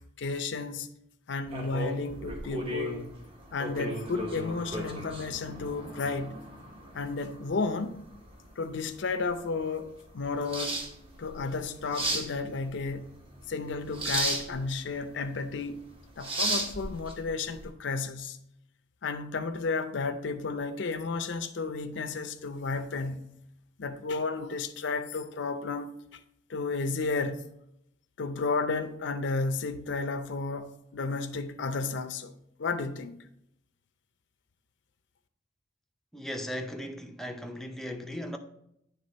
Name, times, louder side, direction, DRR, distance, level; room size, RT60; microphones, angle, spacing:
voice 1, 0.2-0.9 1.3-3.0 3.5-6.4 6.9-8.0 8.6-10.8 11.2-13.1 13.5-15.8 16.2-18.4 19.0-23.3 23.8-26.2 26.5-27.4 28.2-32.3 32.6-33.1, left 4 dB, 65° left, 0.5 m, -32 dB
sound 1, 1.5-17.7, right 1 dB, 30° right, 0.9 m, -36 dB
voice 2, 36.1-38.4, equal, ahead, 0.5 m, -37 dB
8.9 x 3.5 x 4.1 m
head